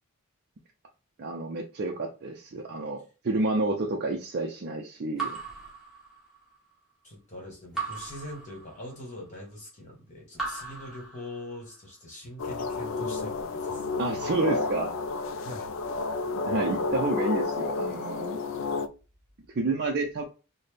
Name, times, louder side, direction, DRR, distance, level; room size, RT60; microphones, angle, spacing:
voice 1, 1.2-5.4 14.0-14.9 16.5-18.4 19.5-20.2, right 2 dB, 45° right, 1 dB, 0.4 m, -29 dB
Raindrop / Drip, 5.2-6.6 7.7-9.1 10.3-11.7, right 4 dB, ahead, 1.2 m, -38 dB
voice 2, 7.0-13.9 15.4-15.7, left 1 dB, 35° left, -2 dB, 1.3 m, -42 dB
sound 1, 12.4-18.9, left 3 dB, 60° left, 0.3 m, -31 dB
4.0 x 2.1 x 3.3 m, 0.33 s
head